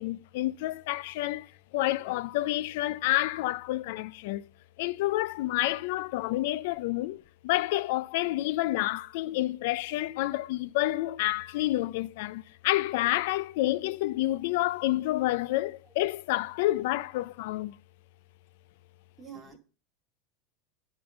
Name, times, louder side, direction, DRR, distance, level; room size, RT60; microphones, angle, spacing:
voice 1, 0.0-4.4 4.8-17.8, left 17 dB, 70° left, 0.3 m, -29 dB
voice 2, 19.2-19.6, right 7 dB, 15° right, 2.3 m, -49 dB
9.6 x 3.8 x 7.0 m
supercardioid pair, 140°, 0 cm